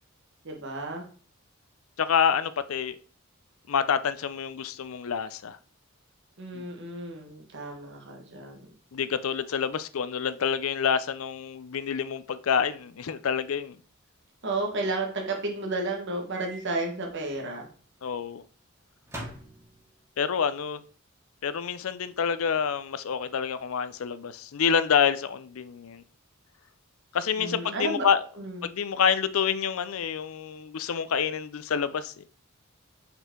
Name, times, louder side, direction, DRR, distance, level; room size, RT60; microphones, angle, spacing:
voice 1, 0.4-1.0 6.4-8.7 14.4-17.7 27.4-28.1 28.4-28.6, right 2 dB, 55° right, 1.3 m, -32 dB
voice 2, 2.0-3.0 3.7-5.6 6.5-6.6 8.9-13.8 18.0-18.4 20.2-20.8 21.4-26.0 27.1-28.2 28.6-32.2, left 7 dB, 75° left, 0.5 m, -27 dB
Microwave oven, 16.3-16.6 17.0-17.1 19.0-20.1, right 1 dB, 15° right, 1.7 m, -41 dB
5.7 x 4.5 x 3.7 m
head